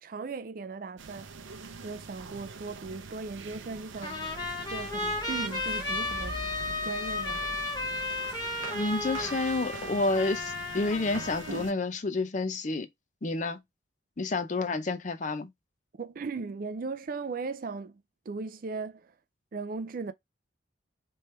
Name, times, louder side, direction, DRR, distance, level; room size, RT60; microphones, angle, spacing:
voice 1, 0.0-1.3 1.8-4.2 4.7-6.4 6.8-7.5 16.0-18.0 18.3-19.1 19.5-20.1, right 4 dB, 45° right, 0.4 m, -37 dB
sound 1, 1.0-11.7, right 4 dB, 90° right, 0.6 m, -44 dB
Trumpet, 4.0-11.7, left 2 dB, 20° left, 1.2 m, -34 dB
sound 2, 4.6-10.5, equal, 5° right, 1.5 m, -47 dB
voice 2, 8.7-12.9 13.2-13.6 14.2-15.5, left 3 dB, 40° left, 0.5 m, -29 dB
3.3 x 3.0 x 3.1 m
head